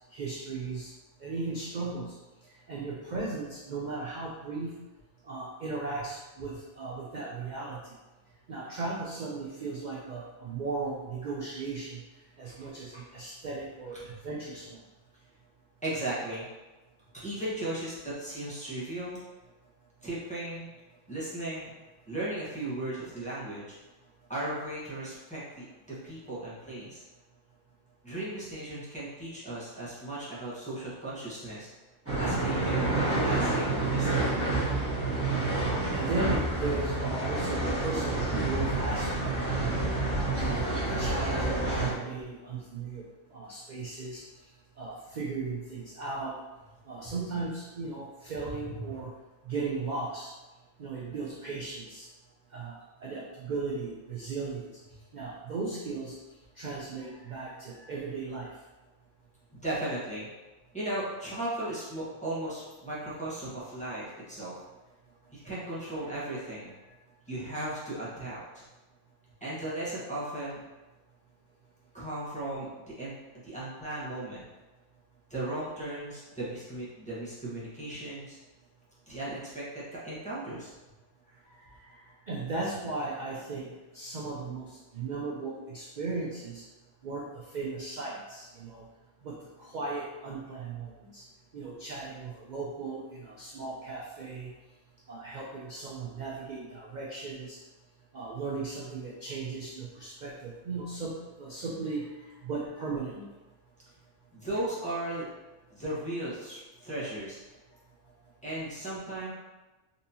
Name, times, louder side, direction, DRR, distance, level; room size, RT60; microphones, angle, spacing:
voice 1, 0.1-0.9 1.2-2.1 2.7-4.8 5.2-7.8 8.5-12.0 12.4-14.8 35.9-39.9 40.4-43.0 43.3-44.2 44.8-46.4 46.9-49.1 49.5-50.3 50.8-52.1 52.5-52.8 53.0-54.7 55.1-56.1 56.6-58.5 82.3-86.6 87.0-87.3 87.5-88.8 89.2-91.2 91.5-94.5 95.1-97.6 98.1-102.1 102.4-103.3, right 3 dB, 80° right, -4 dB, 0.4 m, -36 dB
voice 2, 15.8-16.5 17.1-19.2 20.0-20.7 21.1-21.7 22.1-23.8 24.3-27.0 28.0-31.7 32.2-34.4 48.6-49.1 57.0-57.9 59.6-60.3 60.7-64.6 65.3-67.0 67.3-68.7 69.4-70.6 71.9-72.7 73.0-73.1 73.4-74.4 75.3-78.4 79.1-80.7 81.3-82.1 104.3-105.3 105.7-107.4 107.7-107.8 108.4-109.3, right 1 dB, 5° left, -9 dB, 0.8 m, -36 dB
sound 1, 32.1-41.9, right 2 dB, 10° right, 1.1 m, -28 dB
4.1 x 2.7 x 2.7 m, 1.1 s
omnidirectional pair, 1.4 m